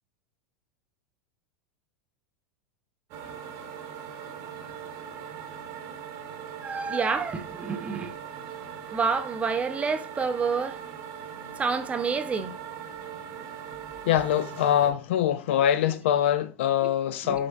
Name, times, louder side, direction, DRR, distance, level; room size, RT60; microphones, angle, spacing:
sound 1, 3.1-14.9, right 8 dB, 50° right, 0.9 m, -40 dB
voice 1, 6.6-8.1 8.9-10.8 11.6-12.6 16.8-16.9 17.2-17.4, right 5 dB, 20° right, 0.5 m, -28 dB
voice 2, 14.1-17.5, left 10 dB, 65° left, 0.4 m, -24 dB
6.1 x 2.5 x 2.4 m
hypercardioid pair, 90°, 7 cm